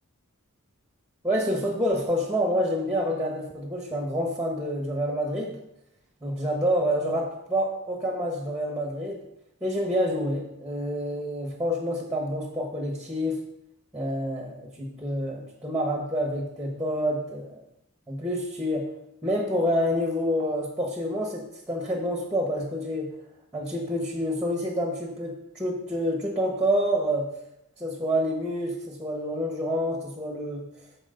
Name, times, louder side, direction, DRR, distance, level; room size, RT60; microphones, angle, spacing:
voice 1, 1.2-5.6 6.2-9.2 9.6-13.4 13.9-17.6 18.1-18.9 19.2-23.1 23.5-27.3 27.8-30.7, equal, 5° right, 1 dB, 1.3 m, -28 dB
13.5 x 4.9 x 3.9 m, 0.82 s
head